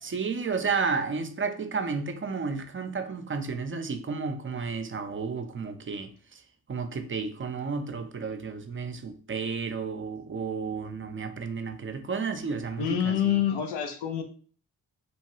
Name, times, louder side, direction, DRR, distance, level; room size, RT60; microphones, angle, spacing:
voice 1, 0.0-6.4 6.7-13.4, right 5 dB, 30° right, 7 dB, 0.5 m, -32 dB
voice 2, 12.8-14.2, left 9 dB, 90° left, 5 dB, 0.6 m, -27 dB
3.0 x 2.2 x 3.0 m, 0.43 s
supercardioid pair, 50°, 40 cm